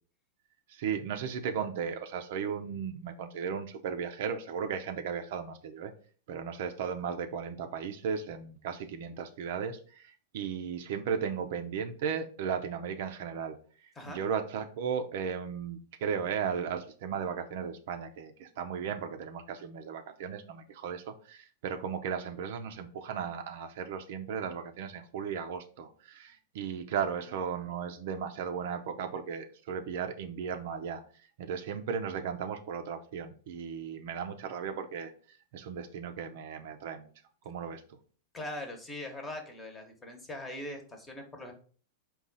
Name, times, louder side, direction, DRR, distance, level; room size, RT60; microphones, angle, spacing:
voice 1, 0.7-5.9 6.3-13.6 13.8-31.0 31.4-35.1 35.5-37.1 37.4-38.0, right 7 dB, 65° right, 7 dB, 0.5 m, -36 dB
voice 2, 38.3-41.5, left 1 dB, 15° left, 4 dB, 1.0 m, -41 dB
4.0 x 2.3 x 3.9 m, 0.42 s
hypercardioid pair, 105°, 0 cm